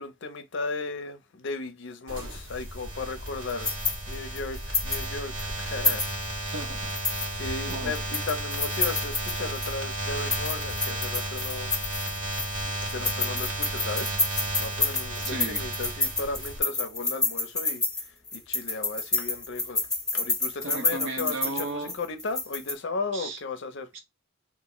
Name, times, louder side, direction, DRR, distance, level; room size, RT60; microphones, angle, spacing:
voice 1, 0.0-3.7 4.1-6.1 7.3-11.7 12.0-12.2 12.8-14.2 14.5-17.8 18.3-19.8 20.1-23.9, left 3 dB, 55° left, 0.5 m, -35 dB
sound 1, 2.1-16.6, right 1 dB, 80° right, 1.5 m, -33 dB
sound 2, 3.3-5.1 5.4-5.5 5.8-6.5 6.9-9.8 10.2-12.6 12.9-22.7, left 3 dB, ahead, 0.7 m, -29 dB
voice 2, 6.4-7.0 7.7-7.9 15.3-15.7 20.6-22.0 23.1-23.4 23.9-24.0, right 2 dB, 60° right, 0.8 m, -35 dB
2.5 x 2.1 x 3.7 m
head